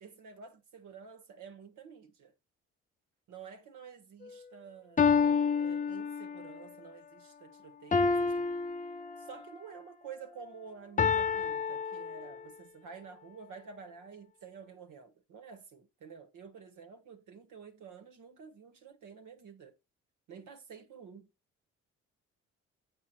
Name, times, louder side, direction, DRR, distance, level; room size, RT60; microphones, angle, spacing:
voice 1, 0.0-2.3 3.3-5.2 5.6-8.5 9.2-19.7 20.3-21.3, right 6 dB, 70° right, 1.7 m, -50 dB
sound 1, 4.2-4.3 5.0-6.6 7.9-9.5 11.0-12.6, left 5 dB, 25° left, 0.7 m, -29 dB
8.2 x 5.6 x 4.4 m
hypercardioid pair, 50°, 32 cm